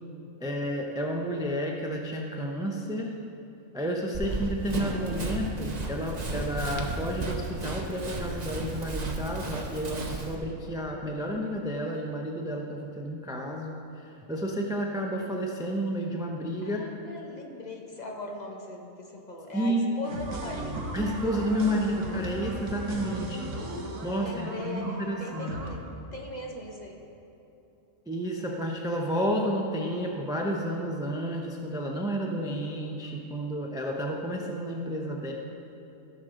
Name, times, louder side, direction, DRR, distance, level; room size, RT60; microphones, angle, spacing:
voice 1, 0.4-3.1 3.7-16.8 19.5-19.9 20.9-23.5 24.0-25.6 28.1-35.3, equal, 5° right, 0 dB, 0.4 m, -31 dB
Run, 4.1-10.4, right 2 dB, 35° right, 0.8 m, -34 dB
voice 2, 16.6-20.9 24.1-27.0, left 2 dB, 35° left, 0 dB, 0.9 m, -40 dB
sound 1, 20.0-25.7, right 2 dB, 65° right, 1.3 m, -37 dB
15.0 x 6.5 x 3.8 m, 2.9 s
omnidirectional pair, 1.4 m